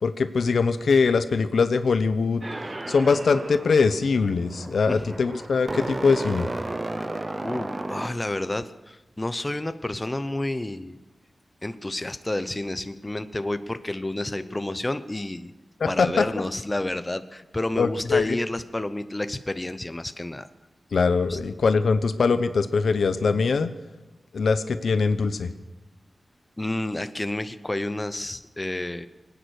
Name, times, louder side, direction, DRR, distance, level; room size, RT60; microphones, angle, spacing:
voice 1, 0.0-2.4 2.9-6.5 15.8-16.1 17.8-18.4 20.9-23.7 24.3-25.5, left 4 dB, 80° left, 11 dB, 0.9 m, -22 dB
sound 1, 2.4-8.6, right 2 dB, 25° right, 0.8 m, -34 dB
voice 2, 4.9-5.2 7.4-11.0 11.6-15.5 15.9-20.5 21.3-21.4 26.6-29.1, left 1 dB, 20° left, 11 dB, 0.8 m, -30 dB
23.5 x 9.3 x 6.5 m, 1.0 s
wide cardioid pair, 100°, 0 cm